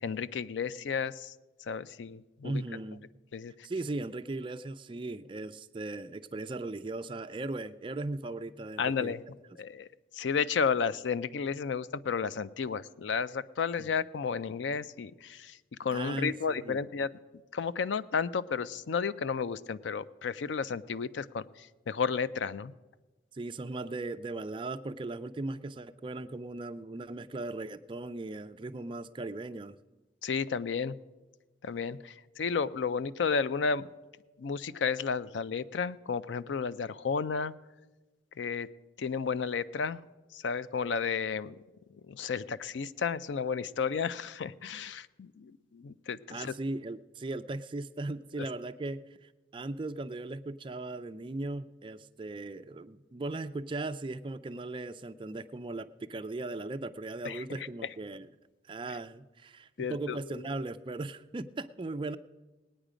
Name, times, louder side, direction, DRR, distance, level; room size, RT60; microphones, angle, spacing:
voice 1, 0.0-1.3 1.7-2.6 3.3-3.5 8.8-9.2 9.6-9.9 10.1-17.1 17.5-22.7 30.2-30.9 31.6-33.9 34.4-37.5 38.4-38.7 39.0-40.0 40.3-41.6 42.1-46.5 57.2-57.4 59.8-60.2, left 5 dB, 85° left, 16 dB, 0.4 m, -32 dB
voice 2, 2.4-3.0 3.6-9.1 13.8-13.9 15.9-16.8 23.3-29.8 46.3-58.3 58.7-62.2, right 2 dB, 25° right, 11 dB, 0.4 m, -38 dB
19.5 x 9.0 x 5.0 m, 1.2 s
head